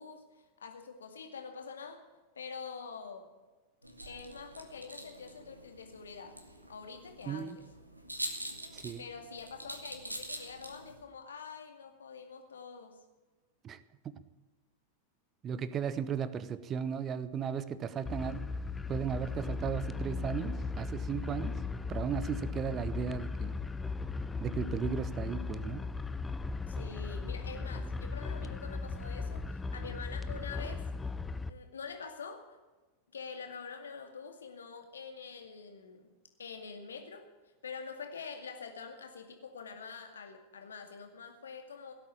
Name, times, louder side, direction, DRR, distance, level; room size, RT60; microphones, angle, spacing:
voice 1, 0.0-2.0 2.3-3.3 4.1-6.4 6.7-7.6 9.0-13.0 26.7-30.9 31.5-32.6 33.1-36.1 36.4-37.3 37.6-41.9, left 5 dB, 70° left, 6 dB, 2.2 m, -46 dB
sound 1, 3.8-11.0, right 1 dB, 85° right, 1.7 m, -45 dB
voice 2, 7.3-7.6 8.7-9.0 13.6-13.8 14.0-14.2 15.4-18.5 18.9-21.6 21.9-23.5 24.4-25.8, right 7 dB, 25° right, 16 dB, 0.9 m, -36 dB
sound 2, 18.1-31.5, left 4 dB, 10° left, 0.7 m, -37 dB
17.5 x 8.4 x 10.0 m, 1.2 s
figure-of-eight pair, 90°, 0 cm